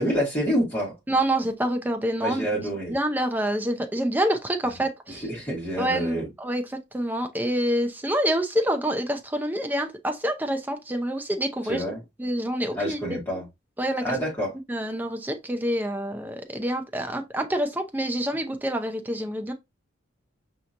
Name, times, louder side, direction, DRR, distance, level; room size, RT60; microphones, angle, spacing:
voice 1, 0.0-0.9 2.2-3.0 5.1-6.3 11.6-12.0 12.7-13.5 14.0-14.5, equal, 10° left, 2.0 m, -27 dB
voice 2, 1.1-2.4 2.9-5.2 5.8-11.8 12.2-13.0 13.8-14.0 14.7-19.5, right 1 dB, 10° right, 0.5 m, -27 dB
5.5 x 2.9 x 2.5 m
head